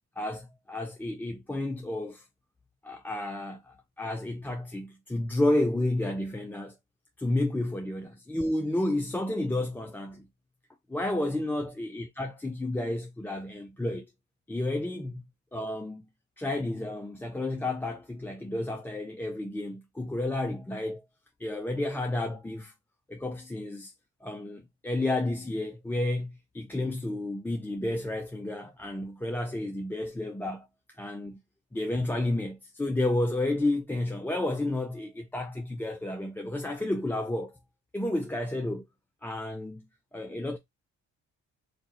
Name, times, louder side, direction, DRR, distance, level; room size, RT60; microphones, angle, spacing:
voice 1, 0.2-2.3 2.8-6.8 7.2-10.3 10.9-14.1 14.5-15.2 15.5-16.1 16.4-21.0 21.4-22.7 23.1-23.9 24.2-30.6 31.0-31.4 31.7-37.5 37.9-38.9 39.2-39.9 40.1-40.6, left 1 dB, 5° left, 0.4 m, -31 dB
2.6 x 2.3 x 4.1 m
cardioid pair, 90°, 30 cm